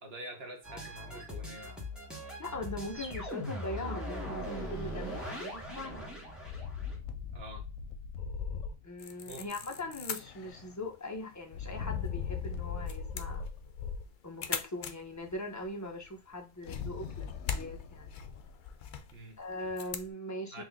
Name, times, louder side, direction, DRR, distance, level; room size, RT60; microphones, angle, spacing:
voice 1, 0.0-1.7 7.3-7.6 9.3-9.4 19.1-19.4 20.5-20.6, right 1 dB, 55° right, 1.0 m, -46 dB
sound 1, 0.6-7.0, equal, ahead, 1.3 m, -40 dB
voice 2, 2.4-6.1 8.8-13.4 14.2-18.1 19.4-20.6, left 1 dB, 15° left, 0.7 m, -41 dB
sound 2, 2.5-3.6 4.5-5.6 6.4-9.0 9.4-10.8 11.5-14.1 16.6-19.0, left 6 dB, 90° left, 1.0 m, -40 dB
sound 3, 9.0-20.1, left 7 dB, 60° left, 0.5 m, -44 dB
4.0 x 2.8 x 3.5 m
omnidirectional pair, 1.4 m